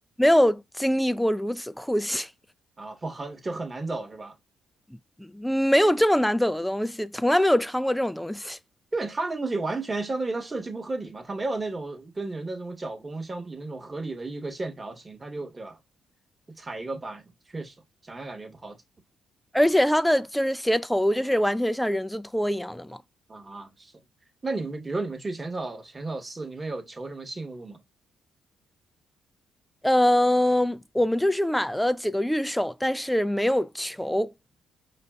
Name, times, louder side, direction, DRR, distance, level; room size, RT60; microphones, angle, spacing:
voice 1, 0.2-2.3 5.2-8.6 19.5-23.0 29.8-34.3, equal, 5° left, 0.3 m, -23 dB
voice 2, 2.8-4.3 8.9-15.8 16.5-17.2 17.5-17.7 18.0-18.8 23.3-23.9 24.4-27.8, right 3 dB, 25° right, 1.0 m, -33 dB
5.1 x 2.5 x 2.3 m
cardioid pair, 90°, 0 cm